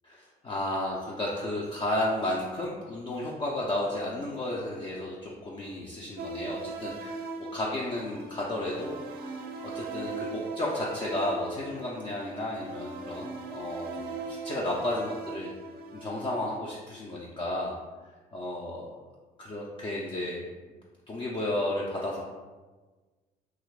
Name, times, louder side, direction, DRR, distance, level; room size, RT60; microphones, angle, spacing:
voice 1, 0.0-15.5 15.9-17.8 18.3-19.0 19.4-20.4 21.1-22.2, left 1 dB, 30° left, -4 dB, 0.4 m, -33 dB
sound 1, 6.2-16.6, right 3 dB, 65° right, 0.4 m, -39 dB
2.9 x 2.4 x 3.2 m, 1.3 s
cardioid pair, 110°, 17 cm